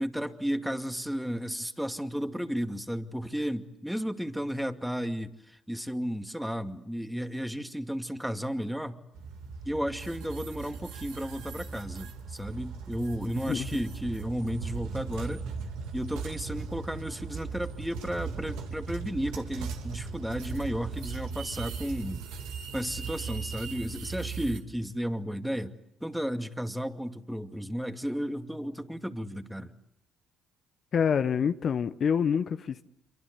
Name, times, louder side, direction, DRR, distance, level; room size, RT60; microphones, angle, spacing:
voice 1, 0.0-9.0 9.6-15.4 15.9-22.3 22.7-29.7, equal, 5° right, 2.3 m, -33 dB
sound 1, 9.1-24.6, right 5 dB, 75° right, 3.0 m, -38 dB
voice 2, 13.5-13.8 30.9-32.8, left 7 dB, 50° left, 1.0 m, -27 dB
27.5 x 24.5 x 8.4 m
hypercardioid pair, 55°, 0 cm